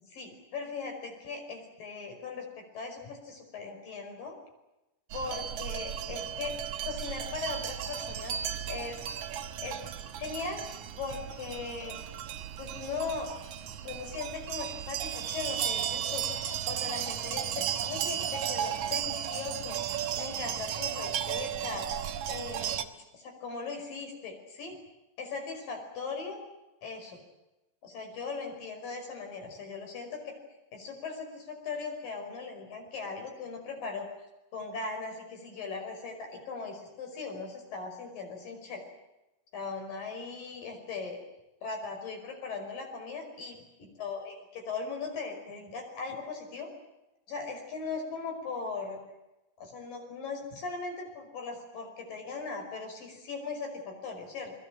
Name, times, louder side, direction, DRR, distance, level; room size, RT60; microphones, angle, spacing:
voice 1, 0.1-2.5 2.7-4.4 5.1-6.6 6.9-8.4 8.7-9.0 9.6-9.8 10.2-10.7 11.0-12.0 12.6-13.3 13.8-16.3 16.7-21.9 22.3-22.9 23.1-24.8 25.2-26.4 26.8-27.2 27.8-30.3 30.7-34.1 34.5-38.8 39.5-41.2 41.6-46.7 47.3-49.0 49.6-54.5, left 4 dB, 80° left, 4 dB, 7.1 m, -39 dB
sound 1, 5.1-22.9, right 9 dB, 65° right, 2.4 m, -35 dB
29.0 x 21.0 x 7.7 m, 0.97 s
omnidirectional pair, 3.9 m